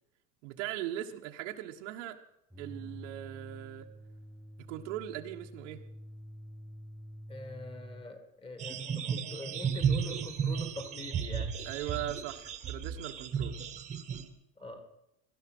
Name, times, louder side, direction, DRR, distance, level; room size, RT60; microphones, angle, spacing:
voice 1, 0.4-2.2 2.6-3.9 4.7-5.8 11.6-13.5, right 13 dB, 85° right, 2 dB, 1.4 m, -39 dB
sound 1, 2.5-8.1, equal, 5° right, 0.7 m, -48 dB
voice 2, 7.3-11.5 14.6-14.8, left 3 dB, 15° left, 8 dB, 1.8 m, -44 dB
sound 2, 8.6-14.2, right 7 dB, 20° right, 1.2 m, -34 dB
19.0 x 12.5 x 6.1 m, 0.82 s
cardioid pair, 170°, 36 cm